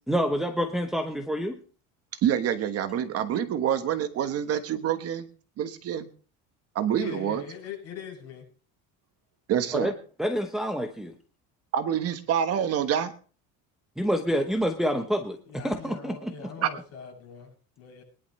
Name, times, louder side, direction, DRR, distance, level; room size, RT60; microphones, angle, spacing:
voice 1, 0.1-1.6 9.7-9.9 10.2-11.1 14.0-16.5, equal, ahead, 4 dB, 0.9 m, -27 dB
voice 2, 2.2-5.3 5.6-6.1 6.7-7.4 9.5-9.9 11.7-13.1 16.6-16.7, right 9 dB, 45° right, 9 dB, 1.2 m, -26 dB
voice 3, 6.9-8.4 15.5-18.0, left 6 dB, 45° left, 0 dB, 7.7 m, -41 dB
22.5 x 11.5 x 3.2 m, 0.39 s
cardioid pair, 150°, 35 cm